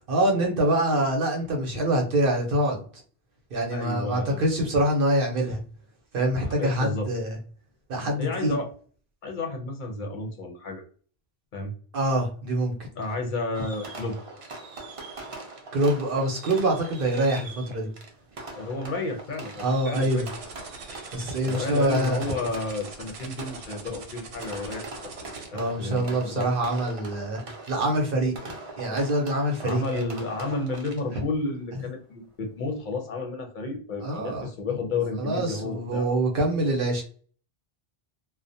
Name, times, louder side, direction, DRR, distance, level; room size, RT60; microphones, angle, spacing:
voice 1, 0.1-2.8 3.5-5.6 6.1-7.4 7.9-8.6 11.9-12.7 15.7-17.9 19.6-20.3 21.1-22.2 25.5-30.1 34.0-34.5 35.2-37.0, right 1 dB, 60° right, 1 dB, 0.8 m, -25 dB
voice 2, 3.7-4.5 6.4-7.1 8.2-8.7 9.2-10.8 11.5-11.7 13.0-14.2 18.5-20.3 21.4-24.9 25.2-26.5 29.6-36.1, left 3 dB, 55° left, 2 dB, 0.6 m, -32 dB
Fireworks, 13.5-31.3, right 2 dB, 45° right, 0.5 m, -42 dB
sound 1, 19.9-25.5, right 5 dB, 90° right, 0.9 m, -43 dB
2.4 x 2.0 x 2.6 m, 0.43 s
omnidirectional pair, 1.1 m